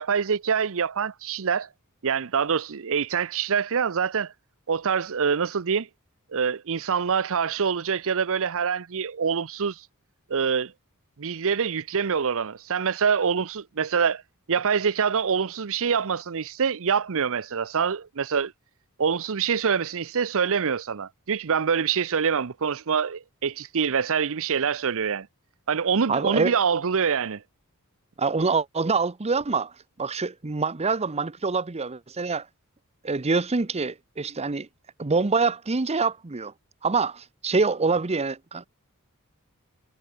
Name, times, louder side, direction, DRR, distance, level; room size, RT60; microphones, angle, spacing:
voice 1, 0.0-1.7 2.0-4.3 4.7-5.9 6.3-9.8 10.3-10.7 11.2-14.2 14.5-18.5 19.0-25.3 25.7-27.4, right 6 dB, 65° right, 0.7 m, -25 dB
voice 2, 26.1-26.6 28.2-29.7 30.0-32.5 33.0-34.7 35.0-36.5 36.8-38.7, right 4 dB, 30° right, 0.8 m, -25 dB
head